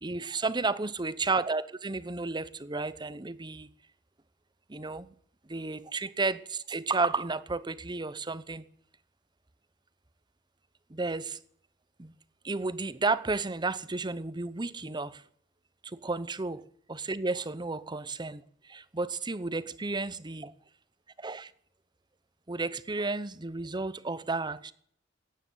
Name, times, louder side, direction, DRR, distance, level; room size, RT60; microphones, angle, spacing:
voice 1, 0.0-3.7 4.7-5.1 5.5-8.6 10.9-11.4 12.0-12.1 12.4-15.2 15.8-16.6 16.9-18.4 18.7-20.5 21.2-21.5 22.5-24.7, right 3 dB, 25° right, 0.8 m, -32 dB
16.0 x 9.7 x 9.3 m
head